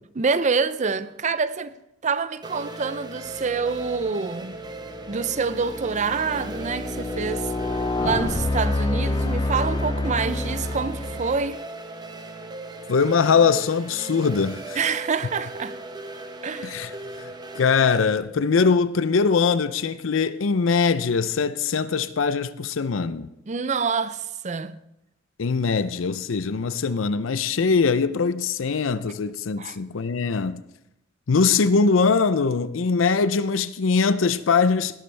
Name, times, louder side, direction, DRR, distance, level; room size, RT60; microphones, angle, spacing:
voice 1, 0.2-1.7 2.0-4.6 5.1-7.5 8.0-11.6 14.8-15.8 16.4-16.8 23.5-24.8 29.6-29.8, right 5 dB, 40° right, 0.5 m, -26 dB
sound 1, 2.4-18.2, right 2 dB, 20° right, 0.9 m, -38 dB
sound 2, 3.9-4.1 4.7-11.5, left 2 dB, 25° left, 0.4 m, -28 dB
voice 2, 12.9-14.8 16.6-16.9 17.2-23.3 25.4-30.6 31.3-35.0, left 5 dB, 85° left, 0.5 m, -22 dB
18.0 x 12.0 x 3.4 m
head